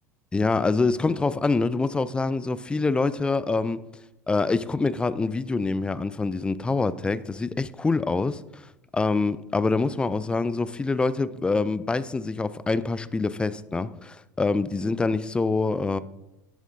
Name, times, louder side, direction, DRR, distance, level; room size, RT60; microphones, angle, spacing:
voice 1, 0.3-3.8 4.3-8.6 8.9-16.0, left 3 dB, 10° left, 17 dB, 0.3 m, -25 dB
10.5 x 7.1 x 2.7 m, 0.94 s
figure-of-eight pair, 80°, 9 cm